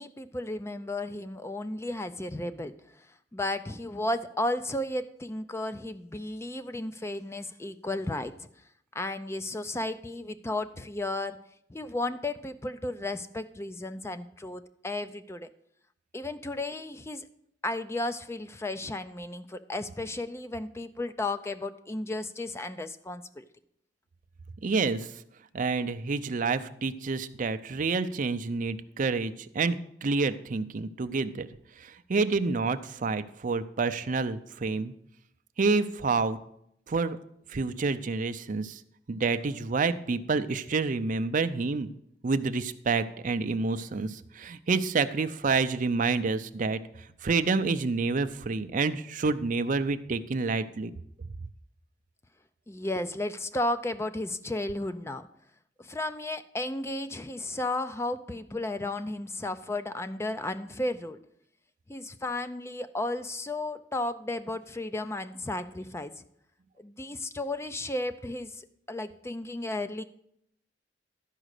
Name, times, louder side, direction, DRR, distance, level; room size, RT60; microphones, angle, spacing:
voice 1, 0.0-2.7 3.3-8.5 8.9-11.4 11.7-15.5 16.1-17.3 17.6-23.4 52.7-55.3 55.8-61.2 61.9-66.2 66.8-70.0, left 2 dB, 15° left, 11 dB, 0.4 m, -34 dB
voice 2, 24.6-25.1 25.5-31.5 31.8-34.9 35.6-36.4 36.9-37.2 37.5-38.8 39.1-41.9 42.2-46.8 47.2-50.9, right 4 dB, 45° right, 11 dB, 0.5 m, -28 dB
12.0 x 5.0 x 6.5 m, 0.74 s
head